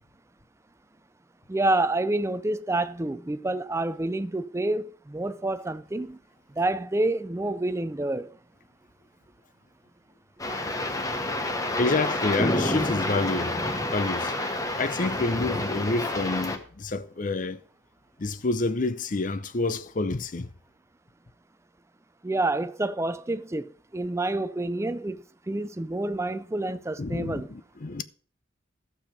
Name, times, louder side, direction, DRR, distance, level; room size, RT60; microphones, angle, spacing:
voice 1, 1.5-6.2 6.6-8.4 22.2-27.5, right 2 dB, 15° right, 0.4 m, -28 dB
sound 1, 10.4-16.6, left 1 dB, 15° left, 1.1 m, -29 dB
voice 2, 11.8-13.6 13.9-14.3 14.8-17.6 18.2-20.5 27.0-28.0, left 3 dB, 40° left, 0.6 m, -28 dB
13.5 x 7.1 x 5.2 m
head